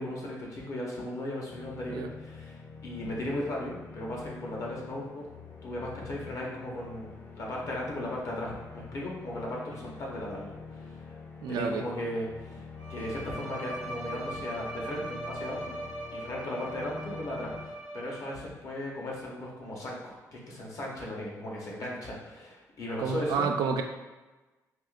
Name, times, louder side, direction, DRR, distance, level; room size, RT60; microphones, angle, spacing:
voice 1, 0.0-5.2 5.6-11.2 11.5-15.8 16.1-23.5, left 1 dB, 50° left, -3 dB, 0.8 m, -37 dB
sound 1, 1.5-17.7, left 5 dB, 25° left, 0.4 m, -46 dB
voice 2, 11.4-11.9 23.0-23.8, right 5 dB, 85° right, 5 dB, 0.4 m, -29 dB
Bowed string instrument, 12.8-18.6, right 1 dB, 75° left, 1.4 m, -40 dB
3.6 x 2.9 x 2.4 m, 1.2 s
cardioid pair, 170°, 7 cm